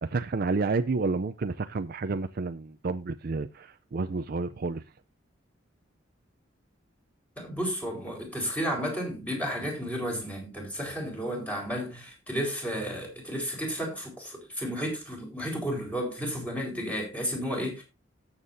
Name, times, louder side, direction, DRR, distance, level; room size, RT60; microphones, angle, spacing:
voice 1, 0.0-4.8, right 3 dB, 50° right, 0.5 m, -30 dB
voice 2, 7.4-17.8, equal, 10° left, 4.3 m, -32 dB
17.5 x 7.4 x 2.6 m
head